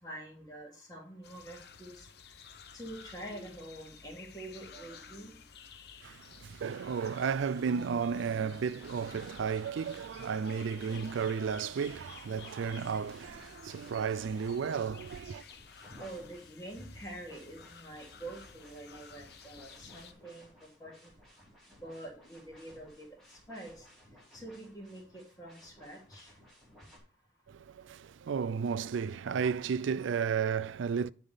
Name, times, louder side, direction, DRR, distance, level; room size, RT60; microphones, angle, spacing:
voice 1, 0.0-2.1 2.7-5.3 16.0-21.1 21.8-23.1 23.5-23.8 24.3-26.3, right 1 dB, 20° left, 2.4 m, -46 dB
Forest Day Atmos, 1.2-20.1, left 6 dB, 55° left, 0.8 m, -53 dB
voice 2, 6.0-15.4 27.5-31.1, right 6 dB, 90° right, 0.4 m, -33 dB
sound 1, 8.1-27.0, equal, ahead, 2.6 m, -58 dB
10.0 x 3.5 x 5.6 m
head